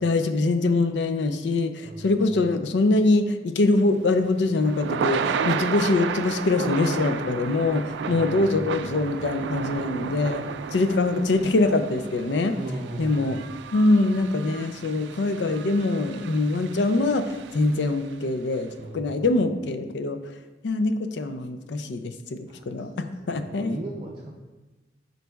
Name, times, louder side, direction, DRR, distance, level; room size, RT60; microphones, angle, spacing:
voice 1, 0.0-10.4 10.7-12.6 13.0-13.4 13.7-17.2 17.5-20.2 20.6-23.8, left 2 dB, 85° left, 9 dB, 0.5 m, -23 dB
voice 2, 1.8-2.3 8.0-8.9 12.6-13.4 18.8-19.2 22.5-24.3, right 2 dB, 30° right, -3 dB, 0.5 m, -37 dB
Thunder / Rain, 3.9-18.1, right 6 dB, 85° right, 0.3 m, -33 dB
10.5 x 4.0 x 2.3 m, 1.2 s
head